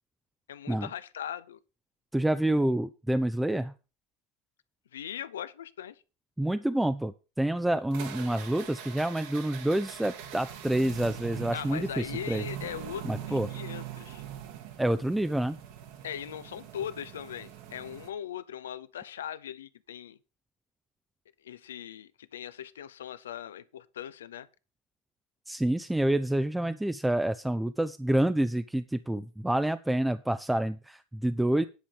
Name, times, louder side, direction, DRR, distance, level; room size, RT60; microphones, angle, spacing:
voice 1, 0.5-1.6 4.9-6.0 11.5-14.2 16.0-20.2 21.4-24.5, left 10 dB, 80° left, 0.8 m, -40 dB
voice 2, 2.1-3.7 6.4-12.4 13.0-13.5 14.8-15.6 25.5-31.6, right 1 dB, 5° right, 0.6 m, -28 dB
sound 1, 7.9-18.1, right 10 dB, 65° right, 2.2 m, -42 dB
10.5 x 5.6 x 6.8 m
hypercardioid pair, 75°, 0 cm